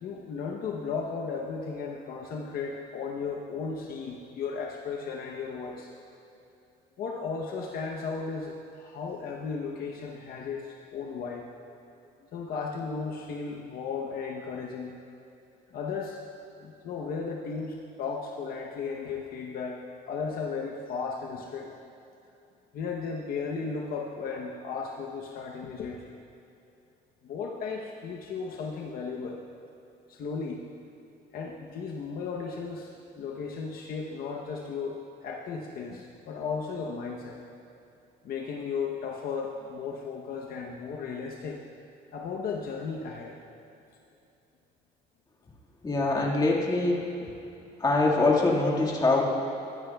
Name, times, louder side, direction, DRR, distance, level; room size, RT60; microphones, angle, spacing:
voice 1, 0.0-5.9 7.0-11.5 12.3-14.9 15.7-16.2 16.6-21.7 22.7-26.1 27.2-29.4 30.1-30.6 31.3-37.4 38.2-41.6 42.1-43.4, left 5 dB, 60° left, 0 dB, 0.9 m, -35 dB
voice 2, 45.8-47.0 47.8-49.2, left 2 dB, 20° left, -2 dB, 1.8 m, -23 dB
15.5 x 12.5 x 2.3 m, 2.8 s
cardioid pair, 110°, 17 cm